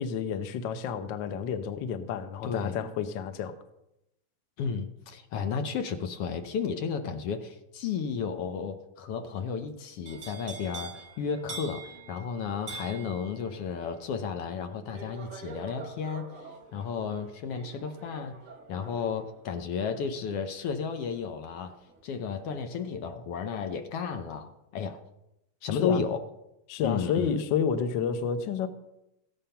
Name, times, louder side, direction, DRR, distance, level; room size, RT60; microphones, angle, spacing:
voice 1, 0.0-3.6 25.7-26.0 26.7-28.7, left 7 dB, 90° left, 10 dB, 1.0 m, -30 dB
voice 2, 2.4-2.8 4.6-18.4 18.7-21.8 22.0-25.0 25.6-26.2 26.8-27.4, left 6 dB, 65° left, 7 dB, 1.6 m, -33 dB
sound 1, 10.0-22.0 22.3-22.8, right 4 dB, 30° right, 1.9 m, -46 dB
15.0 x 9.0 x 5.7 m, 0.88 s
omnidirectional pair, 3.4 m